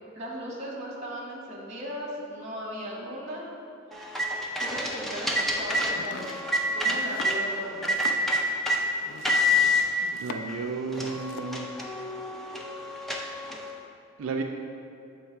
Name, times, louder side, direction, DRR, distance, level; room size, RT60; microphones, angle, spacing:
voice 1, 0.1-3.5 3.9-4.2 4.6-6.3 6.7-7.9, equal, 35° right, -3 dB, 1.2 m, -37 dB
sound 1, 3.9-7.4 7.8-8.8 9.2-9.8 10.5-10.6 10.9-13.7, left 1 dB, ahead, 0.4 m, -27 dB
Domestic sounds home sounds, 5.9-10.7 10.9-11.6, left 5 dB, 75° left, 0.3 m, -42 dB
voice 2, 10.2-11.7 14.2-14.4, right 4 dB, 90° right, 3 dB, 0.4 m, -32 dB
7.2 x 3.2 x 4.5 m, 2.5 s
head